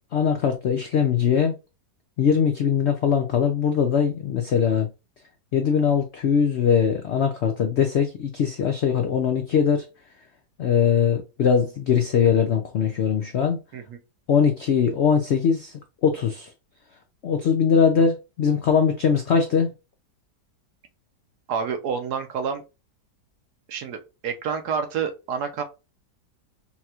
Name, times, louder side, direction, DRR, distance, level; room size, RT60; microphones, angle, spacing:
voice 1, 0.1-1.5 2.2-4.9 5.5-9.9 10.6-13.6 14.3-15.7 16.0-16.5 17.2-19.7, left 7 dB, 80° left, 0.6 m, -21 dB
voice 2, 21.5-22.6 23.7-25.6, right 6 dB, 70° right, 1.3 m, -28 dB
5.6 x 2.4 x 2.9 m
omnidirectional pair, 1.8 m